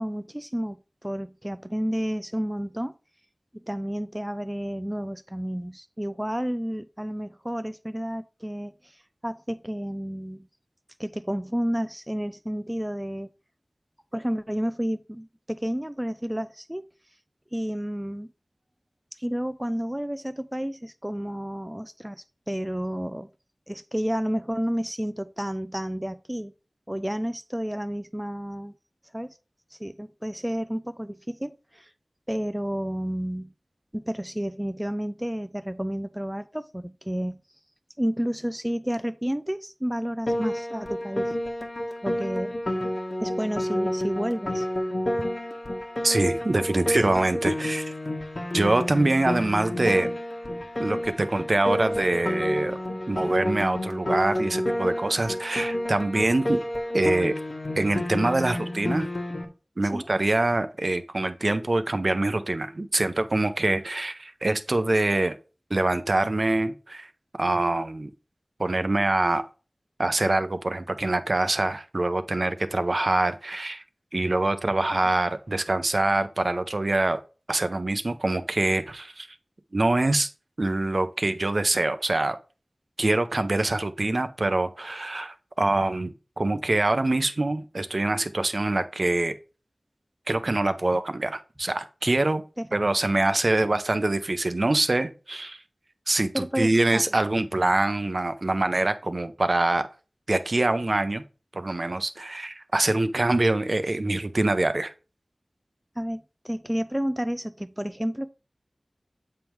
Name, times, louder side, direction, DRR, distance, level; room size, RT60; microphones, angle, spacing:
voice 1, 0.0-2.9 3.7-8.7 9.2-10.5 11.0-13.3 14.1-16.8 17.5-18.3 19.1-23.3 23.7-26.5 26.9-28.7 29.1-29.4 29.7-31.9 32.3-33.5 33.9-37.4 38.0-41.3 42.0-42.6 43.2-44.7 59.9-60.1 92.6-92.7 96.3-97.0 106.0-108.3, equal, 10° right, 0.4 m, -31 dB
Piano, 40.3-59.5, left 1 dB, 60° left, 1.3 m, -29 dB
voice 2, 46.0-47.9 48.5-50.1 50.8-52.8 53.1-56.6 56.9-57.3 57.7-59.1 59.8-65.4 65.7-67.1 67.4-68.1 68.6-69.4 70.0-73.8 74.1-77.2 77.5-79.3 79.7-80.3 80.6-82.4 83.0-89.3 90.3-92.4 92.7-95.6 96.1-99.9 100.3-101.2 101.5-104.9, right 2 dB, 60° right, 0.6 m, -24 dB
7.6 x 3.6 x 4.5 m
wide cardioid pair, 50°, 0 cm